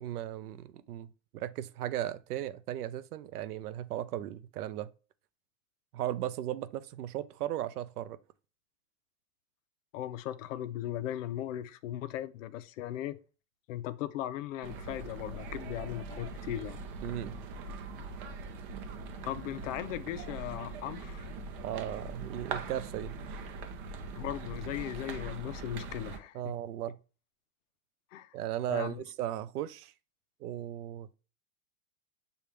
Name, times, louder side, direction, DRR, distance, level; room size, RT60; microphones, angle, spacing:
voice 1, 0.0-4.9 5.9-8.2 17.0-17.4 21.6-23.2 26.3-27.0 28.3-29.9 30.4-31.1, right 12 dB, 90° right, 0.6 m, -36 dB
voice 2, 9.9-13.2 13.7-16.8 19.2-21.2 24.1-26.6 28.1-28.4 28.7-29.0, left 12 dB, 60° left, 0.5 m, -38 dB
sound 1, 14.6-26.2, right 3 dB, 35° right, 0.6 m, -41 dB
6.9 x 2.4 x 3.2 m
supercardioid pair, 150°, 44 cm